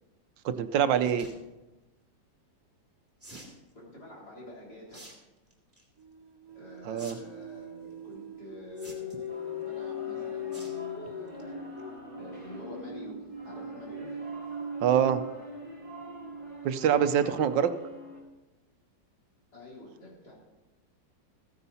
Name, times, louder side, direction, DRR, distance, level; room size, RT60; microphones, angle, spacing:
voice 1, 0.4-1.3 6.9-7.2 14.8-15.2 16.6-17.7, right 9 dB, 80° right, 11 dB, 1.4 m, -24 dB
sound 1, 0.9-1.3 3.2-3.6 4.9-5.1 5.5-5.8 7.0-7.1 7.4-7.5 8.8-9.3 10.5-10.8 11.2-11.4 11.8-11.9 12.1-12.2, right 1 dB, 5° right, 2.5 m, -48 dB
voice 2, 3.7-5.1 6.5-11.6 12.1-14.1 19.5-20.3, left 1 dB, 60° left, -4 dB, 4.4 m, -47 dB
sound 2, 3.9-4.1 6.0-17.1, left 2 dB, 40° right, 0.3 m, -40 dB
sound 3, 9.3-18.2, left 1 dB, 20° left, 5.0 m, -47 dB
15.0 x 9.7 x 4.1 m, 1.0 s
omnidirectional pair, 2.0 m